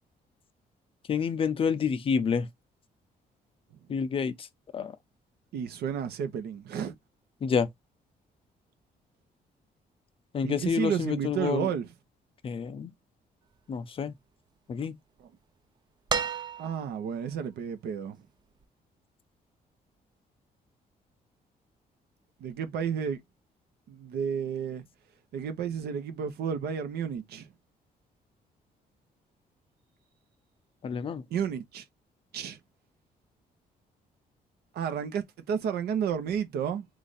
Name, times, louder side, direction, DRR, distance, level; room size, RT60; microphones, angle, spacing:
voice 1, 1.1-2.5 3.9-4.5 4.7-5.0 7.4-7.7 10.3-11.7 12.4-12.9 13.7-14.1 14.7-14.9 30.8-31.2, left 6 dB, 35° left, 0.5 m, -28 dB
voice 2, 5.5-7.0 10.4-11.9 16.6-18.2 22.4-23.2 23.9-24.8 25.3-27.5 31.3-31.8 32.3-32.6 34.7-36.9, right 7 dB, 85° right, 0.8 m, -31 dB
sound 1, 16.1-17.1 18.6-18.7, right 6 dB, 30° right, 0.3 m, -32 dB
3.2 x 2.5 x 3.9 m
cardioid pair, 155°, 16 cm